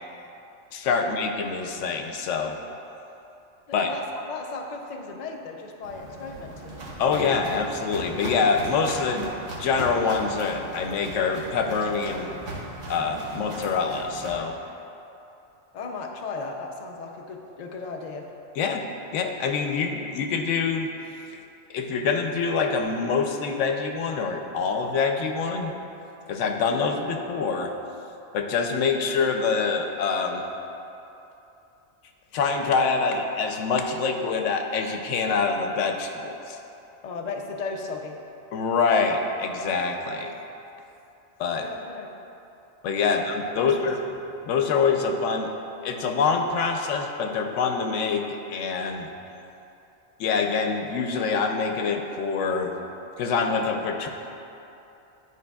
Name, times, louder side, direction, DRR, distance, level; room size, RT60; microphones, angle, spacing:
voice 1, 0.7-2.6 3.7-3.9 7.0-9.3 9.5-12.3 12.9-14.6 18.6-18.8 19.1-20.9 21.7-25.8 26.3-27.7 28.3-30.4 32.3-36.6 38.5-40.3 41.4-41.7 42.8-43.9 44.5-45.5 45.8-49.1 50.2-52.8 53.2-54.1, left 5 dB, 85° left, 4 dB, 0.9 m, -25 dB
voice 2, 3.7-6.8 15.7-18.3 37.0-38.2 41.6-42.1 43.1-43.2 43.6-43.9, left 4 dB, 55° left, 2 dB, 0.5 m, -36 dB
Walk footsteps, 5.8-14.3, right 1 dB, 80° right, 1.4 m, -38 dB
11.0 x 4.7 x 2.3 m, 2.9 s
omnidirectional pair, 1.2 m